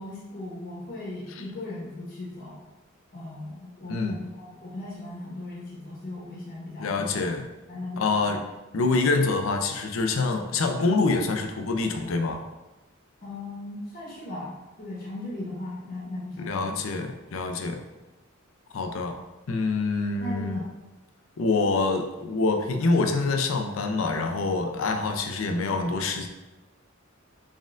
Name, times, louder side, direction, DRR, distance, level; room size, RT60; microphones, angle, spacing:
voice 1, 0.0-2.6 3.1-7.2 7.7-8.4 13.2-16.8 20.2-20.7, left 2 dB, 45° left, -6 dB, 1.1 m, -38 dB
voice 2, 6.8-7.4 8.0-8.4 8.7-12.4 16.4-17.8 18.7-19.2 19.5-20.6 21.4-26.3, left 3 dB, 70° left, 5 dB, 0.5 m, -26 dB
4.2 x 3.6 x 2.5 m, 1.1 s
head